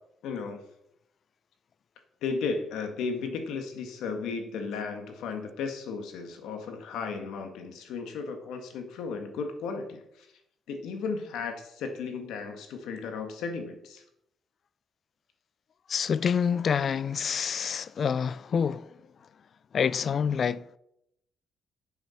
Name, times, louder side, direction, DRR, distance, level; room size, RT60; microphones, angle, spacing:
voice 1, 0.2-0.6 2.2-10.3 10.7-14.0, left 5 dB, 85° left, 1.8 m, -35 dB
voice 2, 15.9-18.9 19.7-20.8, left 7 dB, 50° left, 0.4 m, -27 dB
9.0 x 7.0 x 5.8 m
cardioid pair, 90°, 0 cm